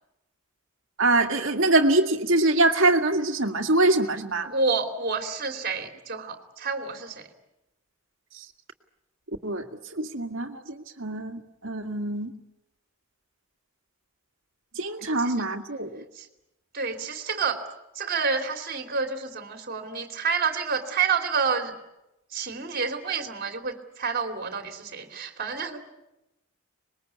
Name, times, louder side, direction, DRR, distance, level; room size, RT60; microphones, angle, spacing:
voice 1, 1.0-4.5 9.4-9.7 9.9-12.3 14.8-16.0, right 2 dB, 65° right, 3 dB, 2.0 m, -24 dB
voice 2, 4.5-7.3 15.2-15.3 16.1-16.3 16.7-17.6 17.9-21.7 22.3-25.8, right 5 dB, 45° right, 4 dB, 2.8 m, -29 dB
25.5 x 21.5 x 8.3 m, 0.93 s
head